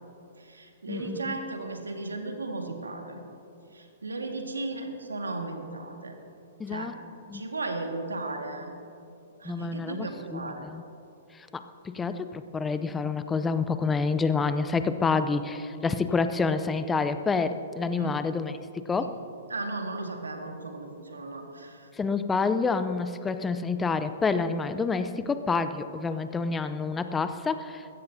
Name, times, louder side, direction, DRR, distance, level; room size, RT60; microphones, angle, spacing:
voice 1, 0.4-3.3 3.7-6.2 6.7-6.9 7.3-8.7 9.4-10.6 18.0-18.1 19.0-19.2 19.5-21.9, right 2 dB, 90° right, 4 dB, 1.8 m, -35 dB
voice 2, 0.9-1.3 6.6-6.9 7.3-7.4 9.4-10.8 11.3-19.2 21.9-27.9, left 4 dB, 15° left, 11 dB, 0.6 m, -28 dB
21.5 x 16.5 x 2.8 m, 2.7 s
hypercardioid pair, 115°, 0 cm